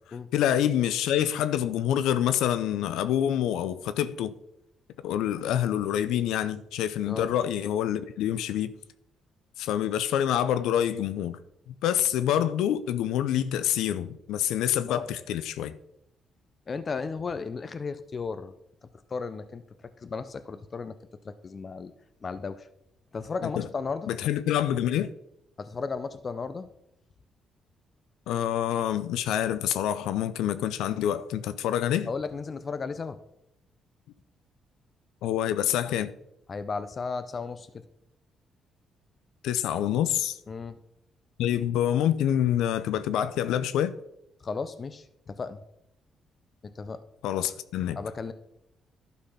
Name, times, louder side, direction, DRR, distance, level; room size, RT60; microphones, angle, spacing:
voice 1, 0.3-4.3 5.0-8.7 9.6-11.4 11.7-15.8 23.6-23.7 24.1-25.1 28.3-32.1 35.2-36.1 39.4-40.4 41.4-43.9 47.2-48.0, left 10 dB, 90° left, 0.4 m, -26 dB
voice 2, 16.7-18.6 19.1-21.0 21.2-21.9 22.2-22.7 23.1-24.1 25.6-26.7 32.1-33.2 36.5-37.7 40.5-40.8 44.4-45.6 46.6-47.0 47.9-48.3, left 4 dB, 40° left, 0.6 m, -34 dB
11.5 x 4.1 x 5.6 m
cardioid pair, 85°, 0 cm